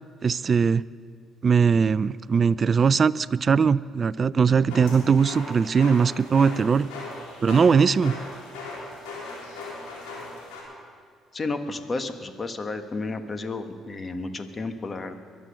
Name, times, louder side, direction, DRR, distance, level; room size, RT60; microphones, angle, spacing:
voice 1, 0.2-0.9 1.4-6.9 7.4-8.2, right 6 dB, 45° right, 17 dB, 0.3 m, -20 dB
sound 1, 4.7-10.6, left 3 dB, 85° left, 3.7 m, -38 dB
voice 2, 11.3-15.2, left 3 dB, 35° left, 8 dB, 1.4 m, -32 dB
23.0 x 7.7 x 6.6 m, 2.1 s
supercardioid pair, 60°, 0 cm